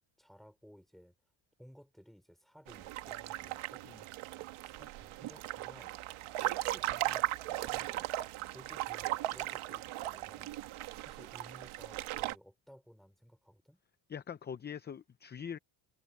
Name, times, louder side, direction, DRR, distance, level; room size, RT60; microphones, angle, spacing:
voice 1, 0.2-1.1 1.6-4.1 4.6-6.0 6.4-8.1 8.5-13.8, equal, ahead, 5.1 m, -58 dB
sound 1, 2.7-12.4, right 15 dB, 75° right, 1.5 m, -38 dB
voice 2, 14.1-15.6, left 7 dB, 20° left, 0.6 m, -43 dB
cardioid pair, 155°, 50 cm